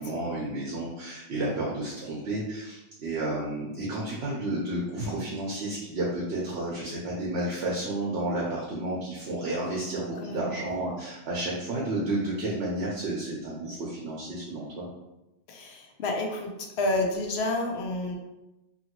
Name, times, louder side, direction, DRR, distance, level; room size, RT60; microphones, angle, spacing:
voice 1, 0.0-14.8, right 1 dB, 65° right, -5 dB, 0.9 m, -31 dB
voice 2, 10.2-10.8 15.5-18.2, left 2 dB, 70° left, 2 dB, 0.8 m, -30 dB
2.8 x 2.7 x 2.9 m, 0.97 s
omnidirectional pair, 1.2 m